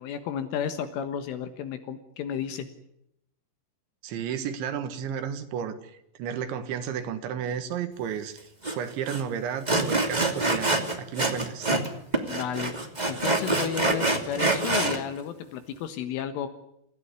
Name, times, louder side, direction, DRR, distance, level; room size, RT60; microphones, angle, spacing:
voice 1, 0.0-2.7 12.3-12.7 13.1-16.5, left 9 dB, 75° left, 9 dB, 3.9 m, -32 dB
voice 2, 4.0-5.8 6.2-8.4 8.7-10.7 11.0-11.7, right 8 dB, 70° right, 9 dB, 3.8 m, -32 dB
Sawing, 8.6-8.7 9.1-9.2 9.7-11.9 12.1-15.0, right 2 dB, 25° right, 0.9 m, -26 dB
27.5 x 16.5 x 9.8 m, 0.79 s
omnidirectional pair, 5.8 m